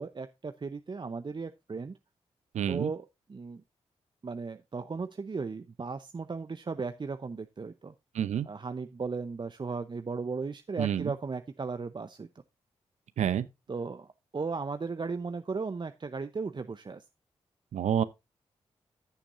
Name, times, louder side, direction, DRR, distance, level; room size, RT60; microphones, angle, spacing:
voice 1, 0.0-2.0 2.7-3.6 4.2-7.9 8.4-12.3 13.7-17.0, right 4 dB, 40° right, 0.7 m, -36 dB
voice 2, 2.5-2.9 8.1-8.5 10.8-11.1 13.2-13.5 17.7-18.0, right 9 dB, 75° right, 0.7 m, -28 dB
14.0 x 7.0 x 2.5 m
supercardioid pair, 40°, 12 cm